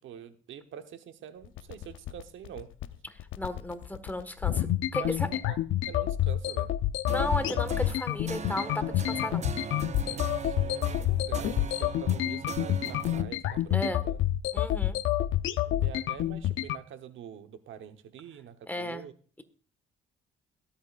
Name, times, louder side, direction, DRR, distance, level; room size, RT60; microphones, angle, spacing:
voice 1, 0.0-2.7 5.0-5.6 5.9-6.7 10.0-14.2 14.5-14.7 15.7-19.1, right 9 dB, 75° right, 8 dB, 1.1 m, -45 dB
sound 1, 1.4-16.8, left 13 dB, 80° left, 0.7 m, -28 dB
voice 2, 3.4-5.3 7.1-9.5 13.7-14.0 14.5-15.0 18.7-19.0, left 1 dB, 10° left, 10 dB, 1.6 m, -34 dB
sound 2, 7.1-13.2, right 7 dB, 35° right, 0.6 m, -39 dB
21.5 x 8.8 x 2.5 m, 0.42 s
cardioid pair, 90°, 20 cm